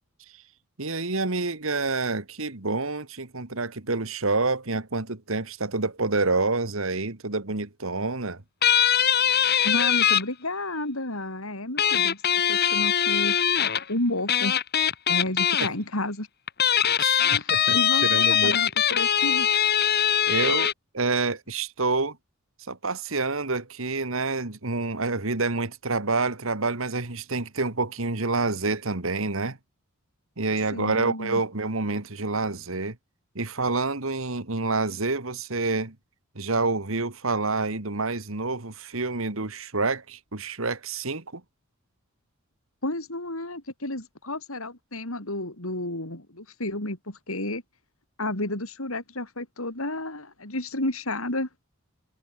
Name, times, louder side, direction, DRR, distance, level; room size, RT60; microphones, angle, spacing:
voice 1, 0.8-8.4 15.6-15.7 17.0-17.8 18.0-18.6 20.3-22.2 22.7-29.6 30.4-33.0 33.4-36.0 36.4-41.4, right 3 dB, 65° right, 2.0 m, -28 dB
sound 1, 8.6-10.2 11.8-13.8 14.3-15.7 16.5-20.7, left 9 dB, 45° left, 2.4 m, -22 dB
voice 2, 9.6-12.2 12.5-13.4 13.9-14.6 15.1-16.3 17.2-19.5 30.7-31.4 42.8-47.6 48.2-51.5, left 1 dB, 75° left, 5.6 m, -31 dB
head